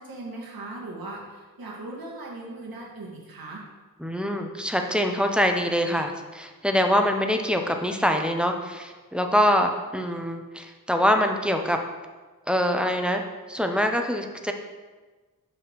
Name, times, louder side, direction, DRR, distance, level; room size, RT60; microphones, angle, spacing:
voice 1, 0.0-3.6, right 2 dB, 80° right, -3 dB, 1.7 m, -38 dB
voice 2, 4.0-11.8 12.5-13.2 13.5-14.5, equal, 5° right, 4 dB, 0.5 m, -24 dB
6.8 x 6.4 x 3.0 m, 1.3 s
wide cardioid pair, 125°, 35 cm